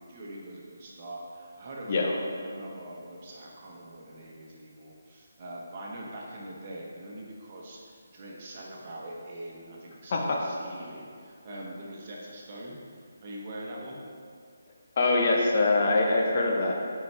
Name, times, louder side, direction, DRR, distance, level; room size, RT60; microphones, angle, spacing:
voice 1, 0.0-14.0, right 1 dB, 40° right, -3 dB, 1.3 m, -43 dB
voice 2, 10.1-10.4 15.0-16.7, left 3 dB, 40° left, 0 dB, 0.9 m, -23 dB
9.4 x 4.7 x 3.4 m, 2.2 s
figure-of-eight pair, 150°, 0 cm